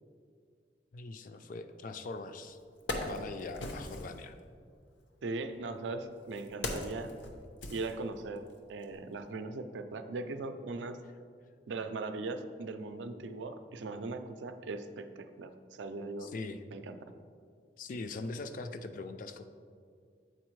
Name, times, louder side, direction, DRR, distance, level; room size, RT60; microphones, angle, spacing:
voice 1, 0.9-2.6 3.0-4.4 16.2-16.6 17.8-19.4, left 3 dB, 45° left, 9 dB, 0.3 m, -41 dB
Wood, 2.0-2.1 2.6-4.2 5.2-8.5 8.8-9.0, left 2 dB, 85° left, 0.7 m, -40 dB
voice 2, 5.2-7.1 7.7-11.0 11.7-16.3 16.7-16.9, right 3 dB, 80° right, 9 dB, 0.4 m, -39 dB
7.9 x 4.2 x 3.1 m, 2.2 s
head